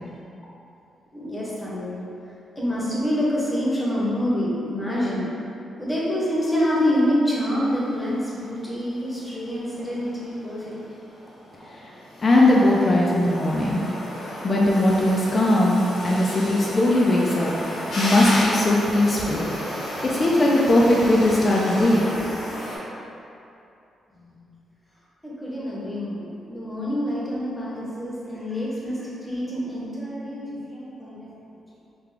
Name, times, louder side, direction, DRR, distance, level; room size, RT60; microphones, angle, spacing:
voice 1, 1.1-2.0 2.6-5.3 5.8-10.9 25.2-31.3, equal, 10° left, -7 dB, 0.8 m, -26 dB
sound 1, 7.6-22.8, equal, 85° left, 1.1 m, -33 dB
voice 2, 12.2-13.8 14.4-17.5 18.0-19.5 20.0-22.0, left 1 dB, 30° left, -4 dB, 0.3 m, -19 dB
3.7 x 2.2 x 3.4 m, 2.7 s
cardioid pair, 125°, 0 cm